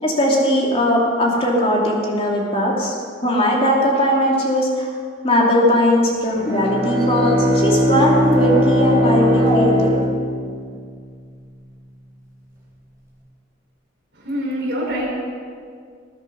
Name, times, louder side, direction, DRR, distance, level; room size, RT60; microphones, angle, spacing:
voice 1, 0.0-2.9 3.2-4.9 5.2-9.9, equal, 30° left, -2 dB, 2.6 m, -18 dB
Bowed string instrument, 6.3-10.9, equal, 15° right, 3.8 m, -19 dB
voice 2, 14.1-15.1, equal, 55° right, -4 dB, 5.0 m, -25 dB
20.0 x 9.8 x 5.4 m, 2.1 s
head